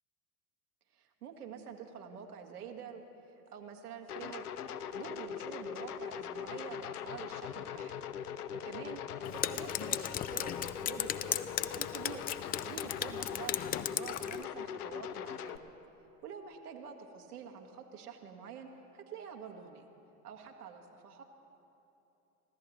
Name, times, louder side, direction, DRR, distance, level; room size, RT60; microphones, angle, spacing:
voice 1, 0.9-4.4 4.7-7.9 8.5-9.0 9.3-10.5 10.8-11.4 11.7-12.3 12.6-15.6 16.2-19.8 20.2-21.2, right 7 dB, 80° right, 4 dB, 1.6 m, -47 dB
sound 1, 4.1-15.6, left 8 dB, 80° left, 0.7 m, -41 dB
Drip, 9.2-14.4, left 11 dB, 20° left, 0.3 m, -37 dB
24.5 x 15.5 x 3.0 m, 3.0 s
hypercardioid pair, 75°, 45 cm